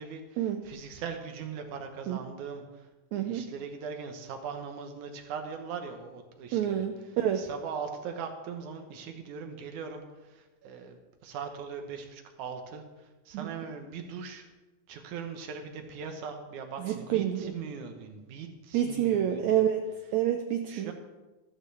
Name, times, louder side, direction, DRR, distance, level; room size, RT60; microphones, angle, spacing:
voice 1, 0.0-2.9 3.2-14.5 14.9-19.6 20.7-20.9, right 6 dB, 65° right, 5 dB, 2.4 m, -40 dB
voice 2, 3.1-3.5 6.5-7.5 13.3-13.5 16.8-17.5 18.7-20.9, right 10 dB, 85° right, 6 dB, 1.6 m, -28 dB
14.0 x 13.5 x 3.5 m, 1.2 s
omnidirectional pair, 4.1 m